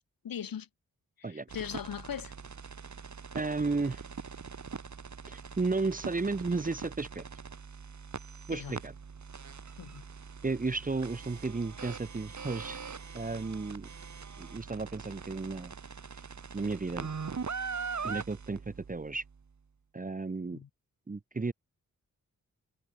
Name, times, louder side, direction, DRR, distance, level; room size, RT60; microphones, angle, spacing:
voice 1, 0.2-0.7 1.2-2.3 8.5-8.8 9.8-10.0 20.5-20.7, left 8 dB, 75° left, 2.1 m, -39 dB
sound 1, 1.5-19.3, right 5 dB, 55° right, 3.2 m, -42 dB
voice 2, 3.3-4.0 5.3-7.2 8.5-8.9 10.4-12.8 13.1-13.9 14.4-15.7 16.5-17.1 18.0-19.2 19.9-20.6 21.1-21.5, right 3 dB, 25° right, 0.9 m, -33 dB
cardioid pair, 50°, 35 cm